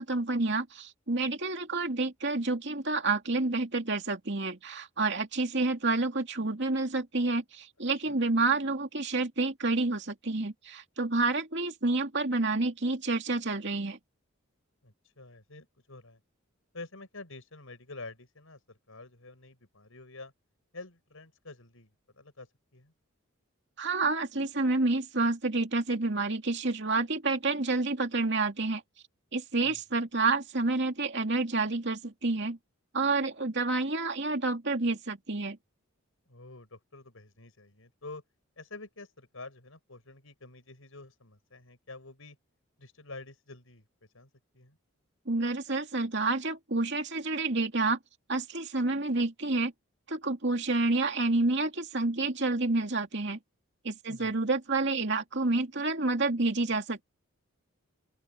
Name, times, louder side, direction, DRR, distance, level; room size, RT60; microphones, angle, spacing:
voice 1, 0.0-14.0 23.8-28.8 29.3-32.6 32.9-35.6 45.3-48.0 48.3-49.7 50.1-53.4 53.8-57.0, right 3 dB, 55° right, 2.7 m, -29 dB
voice 2, 14.8-16.2 16.7-20.3 20.7-21.9 22.2-22.9 29.6-29.8 36.3-38.2 38.6-42.4 42.8-43.8 44.1-44.3 44.5-44.8 54.1-54.3, left 3 dB, 75° left, 5.3 m, -48 dB
open air
head